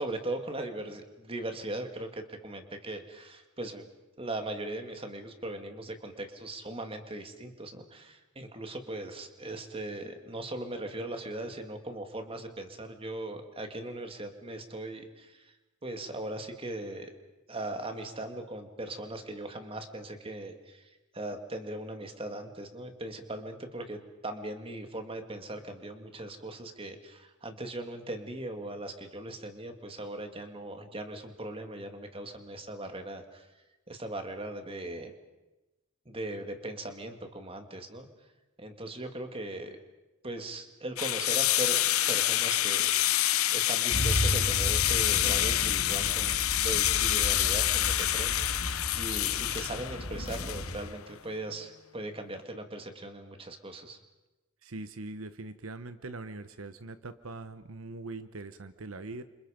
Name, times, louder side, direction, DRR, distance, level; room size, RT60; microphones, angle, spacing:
voice 1, 0.0-3.8 4.2-15.4 15.8-17.1 17.5-20.8 21.1-33.5 33.9-35.1 36.1-38.1 38.6-39.8 40.2-43.2 43.5-46.3 46.6-48.6 48.9-54.0, right 1 dB, 25° right, 6 dB, 2.4 m, -39 dB
sound 1, 41.0-51.0, left 13 dB, 90° left, 0.9 m, -27 dB
sound 2, 43.9-50.8, equal, 55° left, 2.6 m, -34 dB
voice 2, 54.6-59.2, right 2 dB, 75° right, 11 dB, 1.0 m, -42 dB
30.0 x 27.0 x 5.2 m, 1.1 s
head